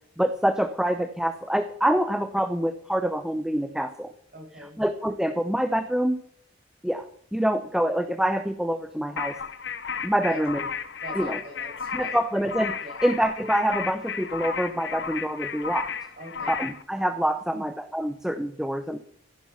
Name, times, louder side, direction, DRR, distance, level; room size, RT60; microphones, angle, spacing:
voice 1, 0.2-4.1 4.8-6.2 6.8-9.4 10.0-10.7 11.1-11.4 11.9-12.8 13.0-15.9 16.5-19.0, equal, 5° right, 9 dB, 0.7 m, -26 dB
voice 2, 4.3-4.8 10.3-10.4 11.0-12.2 12.8-13.0 16.2-16.5 17.5-17.6, right 1 dB, 55° right, -1 dB, 7.1 m, -42 dB
sound 1, 9.2-16.8, left 6 dB, 65° left, 1.0 m, -33 dB
15.0 x 11.5 x 5.8 m, 0.64 s
head